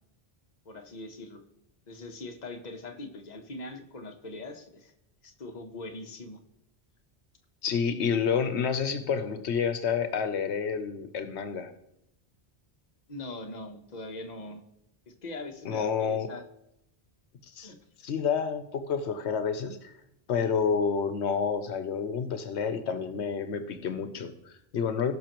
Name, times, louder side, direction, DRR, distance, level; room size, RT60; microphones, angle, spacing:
voice 1, 0.6-1.4 1.9-4.9 5.2-6.4 13.1-14.6 15.1-16.4 17.6-17.8, left 2 dB, 40° left, 4 dB, 1.1 m, -41 dB
voice 2, 7.6-11.7 15.6-16.3 17.5-17.7 18.0-19.9 20.3-25.1, left 6 dB, 85° left, 9 dB, 1.1 m, -29 dB
17.5 x 5.9 x 3.0 m, 0.79 s
omnidirectional pair, 1.1 m